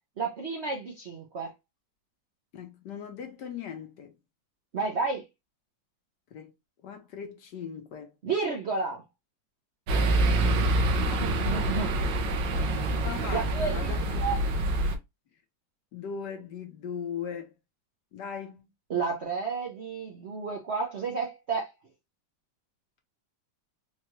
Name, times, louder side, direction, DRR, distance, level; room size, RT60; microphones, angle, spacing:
voice 1, 0.2-1.5 4.7-5.2 8.2-9.0 11.2-12.0 13.3-14.4 18.9-21.7, right 4 dB, 55° right, 0.7 m, -31 dB
voice 2, 2.5-4.2 6.3-6.5 6.8-8.1 10.2-11.4 12.7-14.2 15.9-17.5 18.1-18.7, left 7 dB, 65° left, 1.4 m, -39 dB
sound 1, 9.9-15.0, right 2 dB, 75° right, 1.5 m, -26 dB
4.5 x 2.4 x 3.0 m
omnidirectional pair, 2.0 m